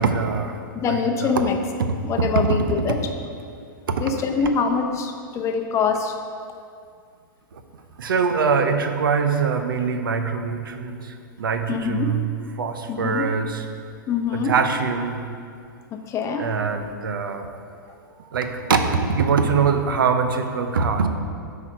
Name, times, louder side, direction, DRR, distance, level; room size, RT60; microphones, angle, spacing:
voice 1, 0.0-0.6 0.8-1.5 1.8-2.6 3.9-4.1 7.5-7.6 8.0-13.6 14.3-15.3 16.4-17.5 18.2-21.1, right 5 dB, 85° right, 7 dB, 0.7 m, -23 dB
voice 2, 0.7-1.6 2.0-3.0 4.0-6.1 11.7-12.1 12.9-13.3 14.1-14.5 15.9-16.5, left 5 dB, 25° left, 4 dB, 0.7 m, -24 dB
8.3 x 4.8 x 4.5 m, 2.3 s
hypercardioid pair, 120°, 11 cm